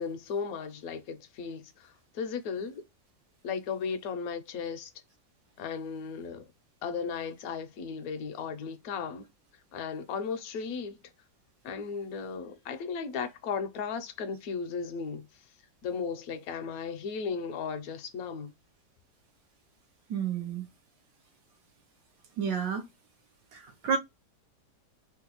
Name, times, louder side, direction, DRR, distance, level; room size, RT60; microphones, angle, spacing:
voice 1, 0.0-2.8 3.4-4.9 5.6-6.5 6.8-9.3 9.7-11.0 11.6-15.3 15.8-18.5, left 5 dB, 65° left, 0.9 m, -35 dB
voice 2, 20.1-20.7 22.4-22.8 23.5-24.0, right 6 dB, 75° right, 1.4 m, -30 dB
3.9 x 2.3 x 2.9 m
omnidirectional pair, 2.0 m